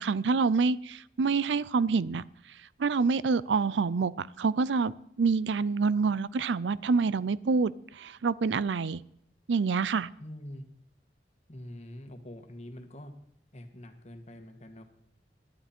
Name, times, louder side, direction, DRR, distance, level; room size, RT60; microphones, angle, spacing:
voice 1, 0.0-2.2 2.8-9.0 9.5-10.1, right 4 dB, 85° right, 0.5 m, -27 dB
voice 2, 10.2-10.6 11.5-13.1 13.5-14.8, left 1 dB, 40° left, 1.6 m, -45 dB
18.5 x 11.5 x 4.4 m
head